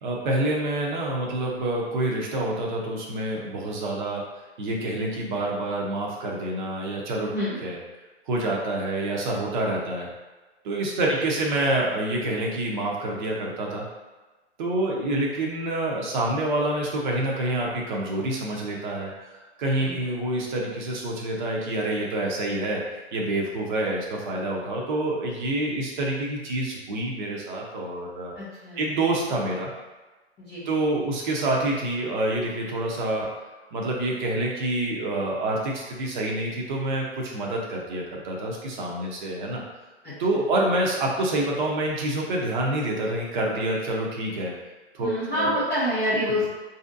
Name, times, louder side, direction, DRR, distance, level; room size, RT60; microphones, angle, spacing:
voice 1, 0.0-4.2 4.6-7.3 7.6-7.8 8.3-10.1 10.6-13.8 14.6-19.1 19.6-22.8 23.1-28.3 28.8-29.7 30.7-33.3 33.7-39.6 40.2-44.5 44.9-45.6, right 1 dB, 45° right, -2 dB, 0.7 m, -27 dB
voice 2, 28.4-28.9 30.4-30.7 40.0-40.5 45.0-46.5, equal, 10° left, -12 dB, 0.4 m, -28 dB
4.9 x 2.7 x 2.5 m, 1.2 s
figure-of-eight pair, 115°, 34 cm